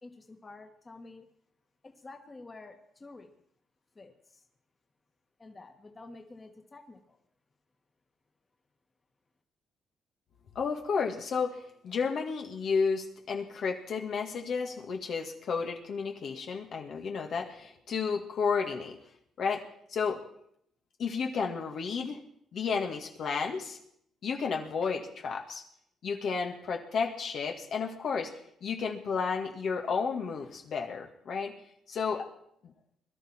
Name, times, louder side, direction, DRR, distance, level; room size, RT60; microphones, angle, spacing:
voice 1, 0.0-1.3 1.8-3.3 4.0-4.4 5.4-7.2, left 3 dB, 25° left, 4 dB, 1.9 m, -49 dB
voice 2, 10.6-19.0 19.4-19.6 19.9-20.2 21.0-22.2 22.5-23.8 24.2-25.6 26.0-31.5 31.9-32.3, left 5 dB, 60° left, 2 dB, 1.9 m, -32 dB
22.0 x 12.0 x 4.5 m, 0.70 s
cardioid pair, 90°, 0 cm